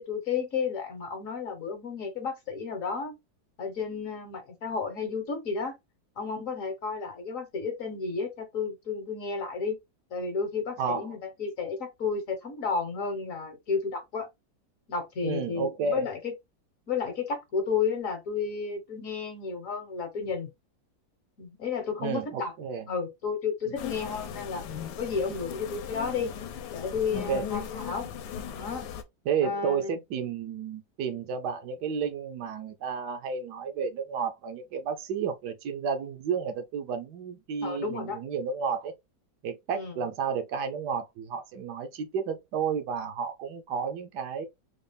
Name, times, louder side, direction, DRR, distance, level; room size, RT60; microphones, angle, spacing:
voice 1, 0.0-3.1 3.6-5.7 6.2-9.8 10.1-14.3 14.9-16.3 16.9-20.5 21.4-22.5 22.9-24.6 25.0-26.3 26.7-28.1 28.5-28.9 29.4-30.0 37.6-38.2 39.7-40.0, left 5 dB, 55° left, 1.2 m, -32 dB
voice 2, 15.2-16.1 22.0-22.9 27.3-27.5 29.3-38.9 39.4-44.5, right 6 dB, 70° right, 1.2 m, -31 dB
sound 1, 23.8-29.0, left 9 dB, 70° left, 1.2 m, -38 dB
3.9 x 2.4 x 3.4 m
omnidirectional pair, 2.0 m